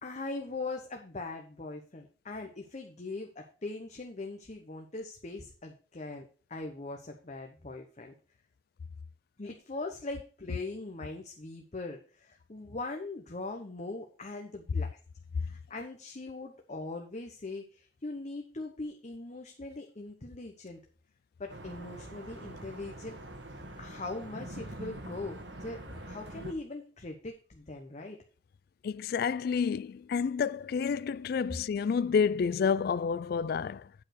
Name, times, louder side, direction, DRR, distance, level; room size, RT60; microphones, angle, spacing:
voice 1, 0.0-6.2 6.5-8.1 9.4-14.9 15.4-20.8 21.4-23.2 23.8-28.2, left 2 dB, 40° left, 0.9 m, -41 dB
sound 1, 21.5-26.5, right 1 dB, 85° right, 1.6 m, -44 dB
voice 2, 28.8-33.9, left 6 dB, 60° left, 0.3 m, -29 dB
8.5 x 4.7 x 6.6 m
head